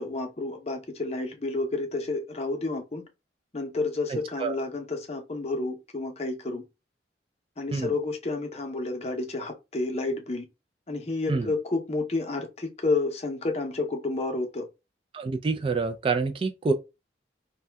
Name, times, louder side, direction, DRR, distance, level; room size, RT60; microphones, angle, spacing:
voice 1, 0.0-3.0 3.5-6.6 7.6-10.4 10.9-14.7, left 3 dB, 35° left, 0.7 m, -30 dB
voice 2, 4.1-4.6 7.7-7.9 11.3-11.5 15.1-16.7, right 4 dB, 30° right, 0.3 m, -27 dB
2.6 x 2.2 x 3.3 m
head